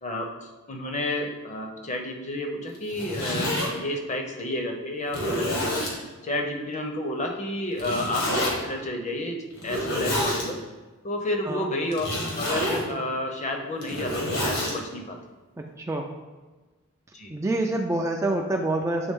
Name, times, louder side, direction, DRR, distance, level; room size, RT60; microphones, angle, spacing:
voice 1, 0.0-5.9 6.2-9.4 9.6-10.6 11.0-12.1 12.3-15.2 17.1-17.3, left 1 dB, 35° left, 2 dB, 0.7 m, -31 dB
Zipper (clothing), 2.7-3.7 4.4-4.5 5.1-6.0 7.8-8.5 9.5-10.4 11.9-12.9 13.6-14.7, left 1 dB, 75° left, 1.5 m, -28 dB
voice 2, 15.8-16.1 17.3-19.1, right 2 dB, 15° right, 2 dB, 0.3 m, -26 dB
7.8 x 3.4 x 3.6 m, 1.2 s
head